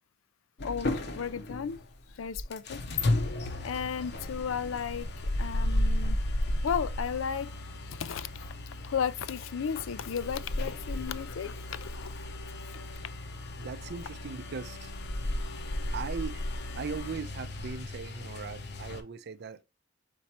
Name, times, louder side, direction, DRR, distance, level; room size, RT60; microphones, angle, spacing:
voice 1, 0.6-1.8 2.1-3.0 3.6-5.1 5.4-6.2 6.6-7.5 7.9-12.1 13.6-13.7, left 7 dB, 90° left, 0.4 m, -34 dB
sound 1, 0.6-19.0, left 1 dB, 60° left, 0.7 m, -34 dB
voice 2, 13.6-14.9 15.9-16.5 16.8-19.6, right 5 dB, 60° right, 0.5 m, -39 dB
4.4 x 4.2 x 2.9 m
head